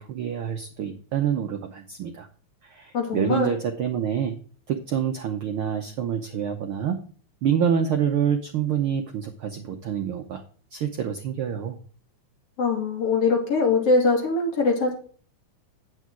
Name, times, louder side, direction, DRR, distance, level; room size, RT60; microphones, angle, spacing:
voice 1, 0.0-2.3 2.6-4.4 4.7-7.0 7.4-10.4 10.7-11.8, right 8 dB, 70° right, 5 dB, 1.3 m, -27 dB
voice 2, 2.9-3.5 12.6-14.9, left 3 dB, 50° left, 0 dB, 3.5 m, -22 dB
9.3 x 8.5 x 3.7 m, 0.43 s
omnidirectional pair, 3.4 m